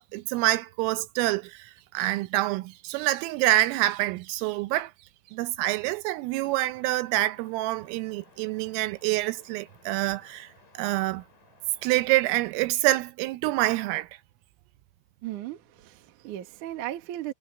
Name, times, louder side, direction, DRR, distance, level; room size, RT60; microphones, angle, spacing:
voice 1, 0.1-4.9 5.3-10.5 10.7-11.2 11.8-14.1, right 17 dB, 80° right, 3.3 m, -26 dB
sound 1, 6.3-12.7, left 4 dB, 55° left, 9.4 m, -59 dB
voice 2, 15.2-17.3, right 13 dB, 60° right, 2.2 m, -36 dB
omnidirectional pair, 6.0 m